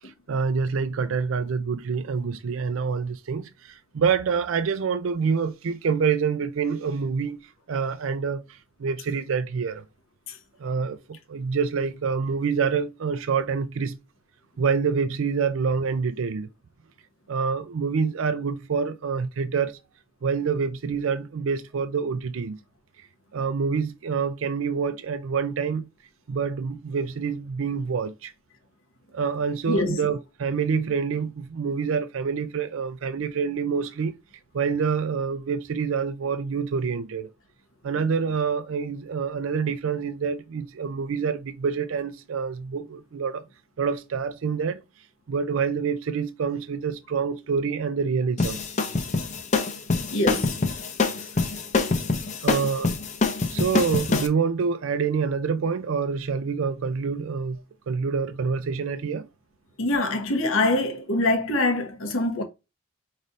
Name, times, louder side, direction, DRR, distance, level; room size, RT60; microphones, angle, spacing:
voice 1, 0.3-9.8 10.6-14.0 14.6-16.5 17.3-19.8 20.2-22.6 23.3-25.9 26.3-28.3 29.1-34.1 34.5-37.3 37.8-43.4 43.8-44.8 45.3-48.6 52.4-53.0 53.5-57.6 57.9-59.3, right 5 dB, 80° right, 0.4 m, -27 dB
voice 2, 29.7-30.0 50.1-50.6 59.8-62.4, left 2 dB, 90° left, 1.1 m, -24 dB
sound 1, 48.4-54.3, left 3 dB, 35° left, 0.6 m, -25 dB
5.4 x 3.2 x 2.5 m
head